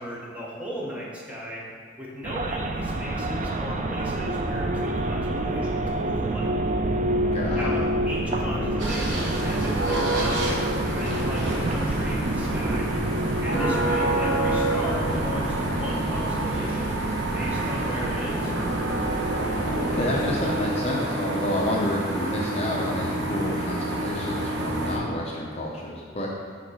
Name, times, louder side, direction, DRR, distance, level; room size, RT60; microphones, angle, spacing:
voice 1, 0.0-1.6 2.0-6.5 7.6-12.9 13.4-17.0 17.3-18.5, equal, 5° right, -5 dB, 1.0 m, -36 dB
sound 1, 2.2-20.6, right 1 dB, 40° right, 0.4 m, -28 dB
voice 2, 7.3-7.7 13.5-14.0 19.6-26.3, left 1 dB, 35° left, -3 dB, 0.6 m, -29 dB
sound 2, 8.8-25.0, right 1 dB, 70° right, 1.0 m, -28 dB
5.1 x 3.7 x 5.5 m, 2.2 s
head